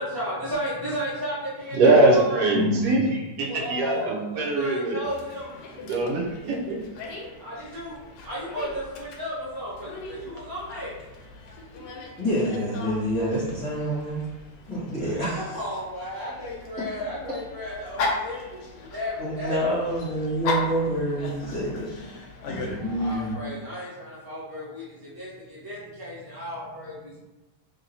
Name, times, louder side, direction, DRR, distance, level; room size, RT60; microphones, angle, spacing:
voice 1, 0.0-2.5 3.5-5.5 7.4-8.0 8.2-10.9 15.0-19.8 22.8-27.2, equal, 20° right, -10 dB, 0.5 m, -34 dB
voice 2, 1.7-5.0 5.8-6.8, right 2 dB, 80° right, -1 dB, 1.2 m, -22 dB
voice 3, 2.5-3.0 12.2-14.2 14.7-15.6 16.8-16.9 19.2-22.0 22.5-23.4, equal, 25° left, -10 dB, 1.3 m, -27 dB
Dog, 5.0-23.3, left 3 dB, 85° left, 1.2 m, -37 dB
2.9 x 2.8 x 2.6 m, 1.1 s
omnidirectional pair, 1.7 m